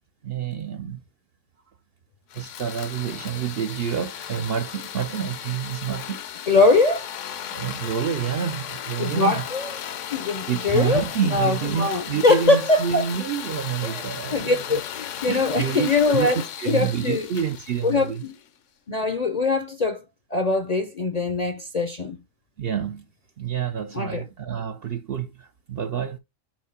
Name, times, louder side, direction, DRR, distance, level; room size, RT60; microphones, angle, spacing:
voice 1, 0.2-1.0 2.3-6.5 7.5-9.4 10.5-14.8 15.3-16.3 16.6-18.2 22.6-23.1 23.4-26.2, right 8 dB, 60° right, 0.6 m, -28 dB
sound 1, 2.3-18.5, left 9 dB, 65° left, 0.9 m, -36 dB
voice 2, 6.5-7.1 9.0-9.7 10.1-13.1 13.8-14.0 14.3-16.4 16.7-17.3 17.8-18.3 18.9-20.0 20.3-22.2 23.9-24.2, left 3 dB, 45° left, 0.5 m, -22 dB
7.2 x 2.7 x 5.6 m
omnidirectional pair, 1.4 m